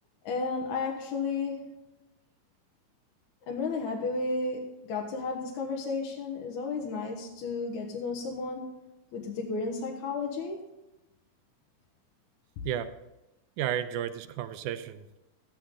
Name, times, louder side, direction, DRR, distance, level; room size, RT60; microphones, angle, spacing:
voice 1, 0.2-1.9 3.5-8.7 9.1-10.6 12.6-12.7, left 4 dB, 70° left, 0 dB, 2.5 m, -33 dB
voice 2, 13.6-15.2, right 10 dB, 85° right, 10 dB, 2.1 m, -33 dB
13.5 x 9.8 x 3.8 m, 0.99 s
omnidirectional pair, 3.6 m